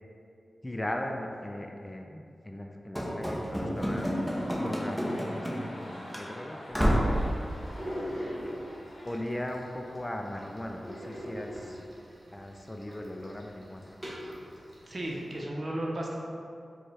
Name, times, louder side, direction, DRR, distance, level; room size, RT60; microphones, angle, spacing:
voice 1, 0.6-4.3 4.5-7.0 8.0-8.5 9.0-11.9 12.3-14.0, left 1 dB, 20° left, 3 dB, 0.3 m, -38 dB
Run / Slam, 2.9-5.8 6.1-6.3 6.7-7.2, equal, ahead, 0.8 m, -29 dB
sound 1, 3.5-11.6 11.9-12.0, left 1 dB, 80° left, 0.8 m, -48 dB
sound 2, 7.0-15.4, equal, 20° right, 1.4 m, -43 dB
voice 2, 14.9-16.1, right 1 dB, 50° right, -2 dB, 0.7 m, -34 dB
4.7 x 2.3 x 4.2 m, 2.5 s
cardioid pair, 55°, 0 cm